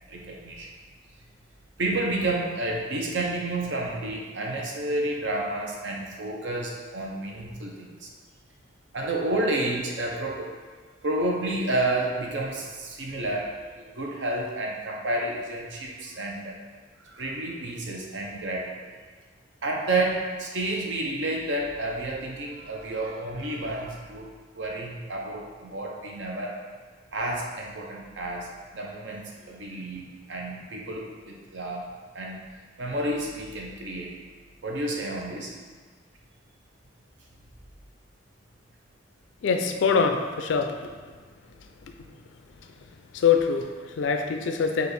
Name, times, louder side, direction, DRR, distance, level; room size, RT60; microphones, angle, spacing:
voice 1, 0.1-0.7 1.8-8.1 8.9-10.5 11.0-13.6 14.0-16.5 17.0-18.9 19.6-24.3 24.5-26.6 27.1-28.5 28.7-29.2 29.5-31.9 32.1-32.4 32.8-34.2 34.6-35.5, right 2 dB, 70° right, -1 dB, 0.7 m, -30 dB
voice 2, 39.4-40.9 41.8-42.1 43.1-44.9, left 6 dB, 70° left, 5 dB, 0.3 m, -24 dB
5.0 x 2.4 x 3.1 m, 1.5 s
head